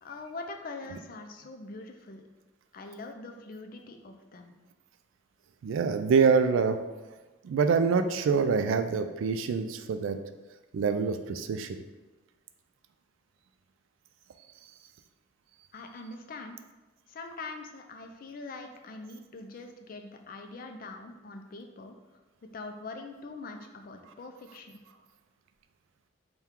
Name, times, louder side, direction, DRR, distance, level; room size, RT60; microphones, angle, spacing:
voice 1, 0.0-2.2 2.7-4.5 15.7-16.6 17.1-22.0 22.5-24.8, left 3 dB, 45° left, 5 dB, 0.4 m, -43 dB
voice 2, 5.6-6.8 7.4-10.2 10.7-11.8, right 5 dB, 80° right, 9 dB, 0.3 m, -25 dB
3.6 x 2.3 x 4.3 m, 1.2 s
head